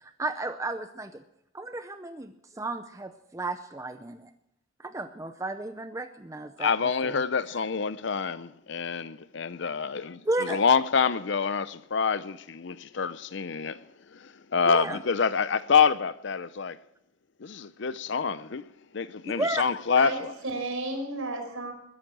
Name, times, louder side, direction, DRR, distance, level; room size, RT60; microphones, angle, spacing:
voice 1, 0.2-1.2 1.5-4.3 4.8-6.7 7.0-7.2 10.3-10.6 14.6-15.0 19.4-19.6, right 2 dB, 15° right, 0.5 m, -33 dB
voice 2, 6.6-16.8 17.4-18.7 18.9-20.3, left 6 dB, 60° left, 0.6 m, -27 dB
voice 3, 20.0-21.7, right 2 dB, 85° right, 4.9 m, -33 dB
21.0 x 10.0 x 6.1 m
head